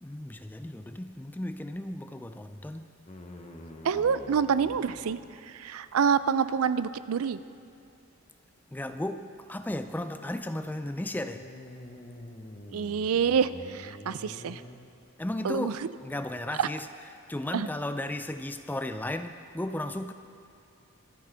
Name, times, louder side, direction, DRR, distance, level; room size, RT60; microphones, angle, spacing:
voice 1, 0.0-2.9 8.7-11.5 15.2-16.9 17.3-20.1, left 1 dB, 10° left, 0.3 m, -35 dB
sound 1, 3.1-5.4 10.8-14.8, left 1 dB, 30° left, 0.9 m, -46 dB
voice 2, 3.8-5.2 5.5-7.4 12.7-14.6 15.4-15.7 16.6-16.7 17.5-17.7, right 6 dB, 80° right, 0.4 m, -27 dB
24.5 x 9.7 x 3.5 m
head